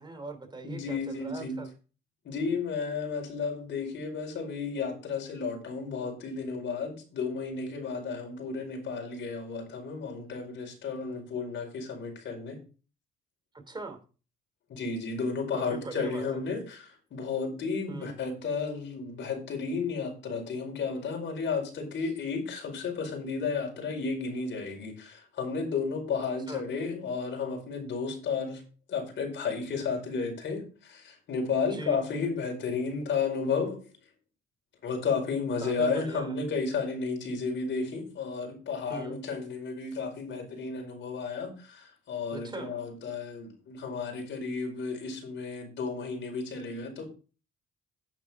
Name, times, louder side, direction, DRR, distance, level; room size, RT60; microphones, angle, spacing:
voice 1, 0.0-1.7 13.5-14.0 15.5-16.4 17.9-18.1 26.5-26.6 31.7-32.0 35.6-36.4 38.9-39.2 42.3-42.7, right 3 dB, 20° right, 3.0 m, -40 dB
voice 2, 0.6-1.6 2.2-12.6 14.7-28.6 28.9-33.8 34.8-47.0, left 5 dB, 70° left, 4.9 m, -33 dB
9.7 x 9.0 x 3.6 m
cardioid pair, 90°, 20 cm